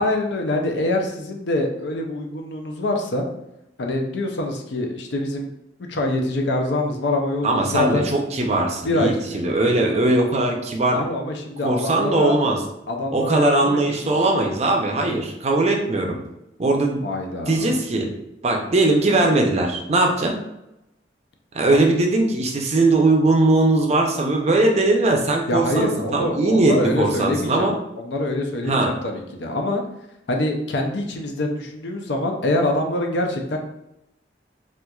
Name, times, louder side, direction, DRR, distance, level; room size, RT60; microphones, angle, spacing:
voice 1, 0.0-3.3 3.8-5.5 5.9-8.1 8.8-9.5 10.9-12.4 12.9-14.1 17.0-17.8 21.7-21.9 25.5-27.7 28.0-29.8 30.3-33.6, left 1 dB, 75° left, 3 dB, 0.5 m, -25 dB
voice 2, 7.4-11.0 11.6-12.6 13.1-16.2 16.6-17.0 17.5-18.1 18.4-20.4 21.5-27.7 28.7-28.9, right 2 dB, 35° right, 2 dB, 0.5 m, -20 dB
4.3 x 2.4 x 2.3 m, 0.87 s
head